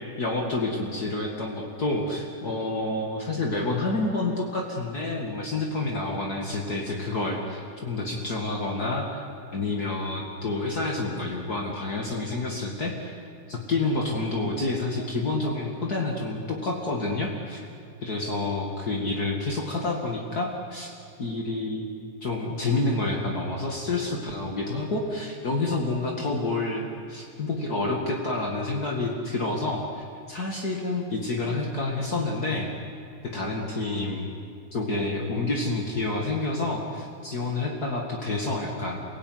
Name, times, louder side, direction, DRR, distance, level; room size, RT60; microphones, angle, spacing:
voice 1, 0.2-9.2 9.5-13.2 13.5-17.6 18.0-20.9 21.2-21.9 22.2-32.7 33.2-34.2 34.7-39.0, left 2 dB, 45° left, 0 dB, 2.7 m, -28 dB
29.0 x 17.0 x 9.6 m, 2.5 s
omnidirectional pair, 2.3 m